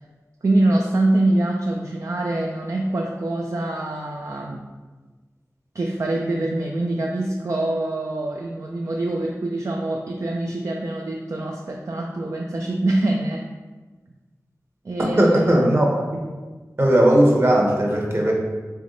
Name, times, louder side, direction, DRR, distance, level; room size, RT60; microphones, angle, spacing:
voice 1, 0.4-4.7 5.7-13.5 14.8-15.6, right 2 dB, 55° right, 0 dB, 0.4 m, -24 dB
voice 2, 15.2-16.2 16.8-18.3, right 1 dB, 40° right, -1 dB, 1.0 m, -17 dB
3.5 x 3.2 x 3.8 m, 1.3 s
wide cardioid pair, 45°, 6 cm